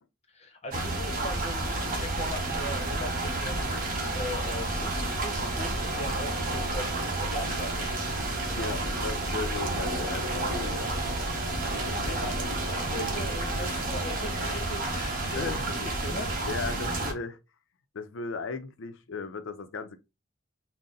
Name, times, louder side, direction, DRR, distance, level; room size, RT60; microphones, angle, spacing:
voice 1, 0.3-8.1 11.5-16.3, left 1 dB, 30° left, 0.8 m, -40 dB
sound 1, 0.7-17.1, right 2 dB, 40° right, 1.0 m, -30 dB
voice 2, 8.5-10.9 15.3-15.7 16.5-17.4 17.9-20.0, left 4 dB, 70° left, 0.5 m, -36 dB
3.9 x 2.0 x 3.8 m
head